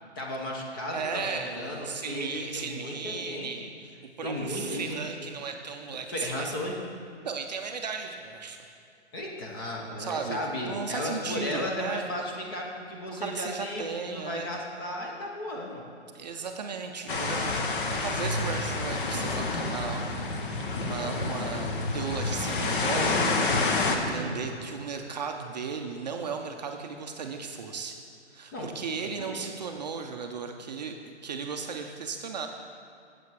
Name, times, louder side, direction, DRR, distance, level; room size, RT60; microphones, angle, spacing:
voice 1, 0.2-3.5 4.2-5.3 6.1-6.9 9.1-15.8 24.0-24.6 28.5-29.5, left 1 dB, 20° left, -1 dB, 0.6 m, -35 dB
voice 2, 0.9-6.5 7.2-8.6 10.0-12.1 13.2-14.5 16.1-23.2 23.8-28.0 28.3-32.5, right 5 dB, 40° right, 4 dB, 0.5 m, -36 dB
sound 1, 17.1-24.0, left 3 dB, 45° left, 1.0 m, -28 dB
8.2 x 7.7 x 4.7 m, 2.5 s
hypercardioid pair, 160°, 35 cm